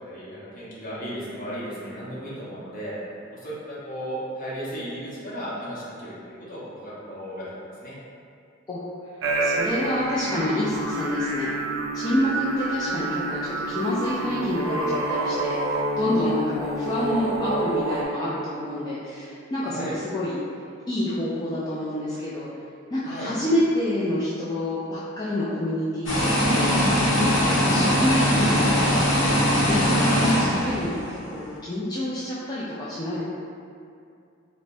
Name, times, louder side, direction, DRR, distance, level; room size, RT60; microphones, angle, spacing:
voice 1, 0.0-3.0 3.3-6.1 6.5-7.5 7.8-7.9 19.7-19.9 23.0-23.3, equal, 45° left, -8 dB, 0.9 m, -35 dB
sound 1, 9.2-18.0, right 2 dB, 65° right, 0.4 m, -28 dB
voice 2, 9.4-11.5 11.9-20.4 20.9-22.5 22.9-26.8 27.2-33.2, left 1 dB, 20° left, -9 dB, 0.3 m, -28 dB
sound 2, 26.1-31.2, equal, 70° left, 0.9 m, -21 dB
4.3 x 2.0 x 2.6 m, 2.4 s
head